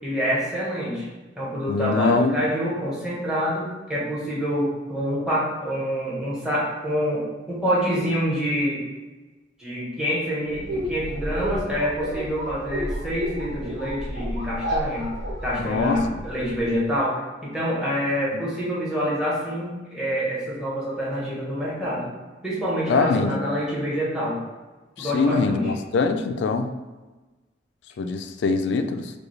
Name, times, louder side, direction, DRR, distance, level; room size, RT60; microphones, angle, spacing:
voice 1, 0.0-1.1 1.4-8.8 9.6-15.1 15.4-22.1 22.4-24.4 25.0-25.7, equal, 5° right, -7 dB, 1.1 m, -26 dB
voice 2, 1.7-2.4 15.6-16.2 22.9-23.3 25.0-26.7 28.0-29.1, left 4 dB, 70° left, 8 dB, 0.3 m, -23 dB
sound 1, 10.5-16.8, equal, 70° right, 1.3 m, -31 dB
4.7 x 2.3 x 3.1 m, 1.2 s
head